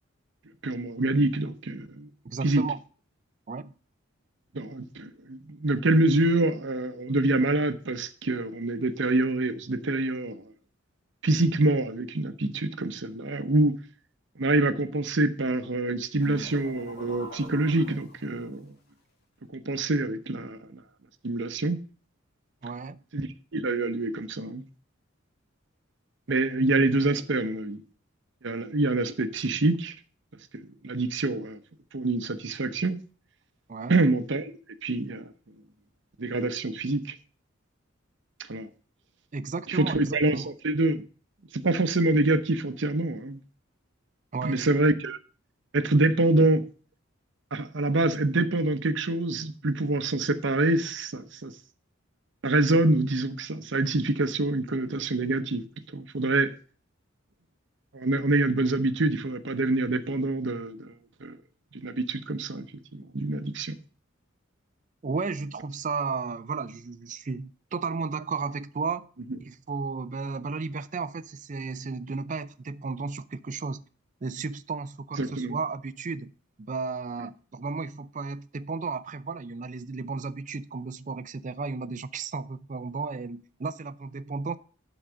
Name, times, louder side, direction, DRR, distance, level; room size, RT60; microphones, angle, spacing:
voice 1, 0.6-2.1 2.4-2.6 4.5-10.5 11.2-13.7 14.4-18.7 19.5-20.8 21.2-21.8 23.1-24.7 26.3-27.8 28.4-29.9 30.5-31.6 31.9-33.0 33.9-34.5 34.8-35.3 36.2-37.1 38.5-38.7 39.7-41.0 41.5-43.4 44.4-45.2 45.7-46.6 47.5-51.5 52.4-55.6 55.9-56.5 57.9-60.9 61.2-61.4 61.7-62.6 62.9-63.8 75.2-75.6, right 2 dB, 60° right, 0.8 m, -26 dB
voice 2, 2.2-2.8 3.5-3.7 22.6-23.0 33.7-34.0 39.3-40.5 44.3-44.7 65.0-69.1 69.4-73.8 74.2-76.3 76.6-84.6, right 4 dB, 40° right, 0.5 m, -33 dB
sound 1, 16.2-18.6, left 1 dB, 50° left, 1.8 m, -43 dB
11.5 x 4.0 x 6.2 m
head